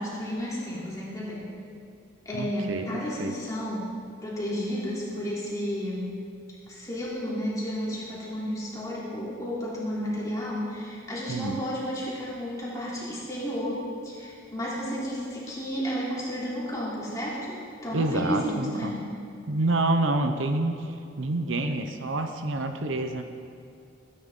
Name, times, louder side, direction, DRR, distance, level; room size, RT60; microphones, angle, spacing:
voice 1, 0.0-1.4 2.3-3.9 4.2-6.1 6.7-13.8 14.0-17.6 17.8-19.0, equal, 15° left, -7 dB, 3.3 m, -32 dB
voice 2, 2.3-3.3 11.3-11.6 17.9-19.0 19.5-23.2, right 2 dB, 65° right, 6 dB, 0.8 m, -28 dB
20.0 x 10.0 x 3.8 m, 2.5 s
head